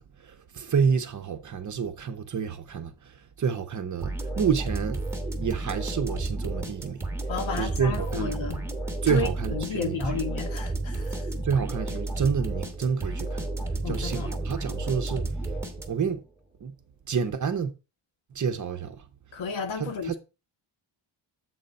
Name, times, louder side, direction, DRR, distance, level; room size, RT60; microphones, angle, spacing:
voice 1, 0.0-5.0 5.4-7.1 7.6-8.3 9.0-10.2 11.4-13.5 13.9-15.6 15.9-16.2 16.6-16.7 17.1-17.7 18.3-19.1 19.8-20.1, right 6 dB, 35° right, 0.8 m, -29 dB
sound 1, 4.0-16.2, right 2 dB, 5° right, 1.2 m, -32 dB
voice 2, 7.3-8.6 9.0-11.2 13.8-14.3 19.3-20.2, left 4 dB, 65° left, 1.5 m, -32 dB
7.8 x 3.8 x 5.3 m
wide cardioid pair, 155°, 50 cm